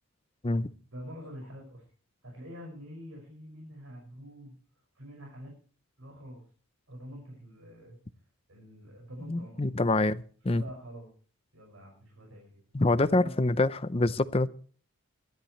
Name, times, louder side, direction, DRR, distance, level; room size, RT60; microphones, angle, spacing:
voice 1, 0.9-1.8 2.2-4.5 4.9-5.5 6.0-6.4 6.9-8.0 8.5-9.6 10.5-11.1 11.5-12.6 13.0-13.3, equal, 70° right, 0 dB, 6.0 m, -46 dB
voice 2, 9.3-10.6 12.7-14.5, left 2 dB, 25° left, 14 dB, 0.6 m, -26 dB
23.0 x 12.0 x 3.2 m, 0.43 s
head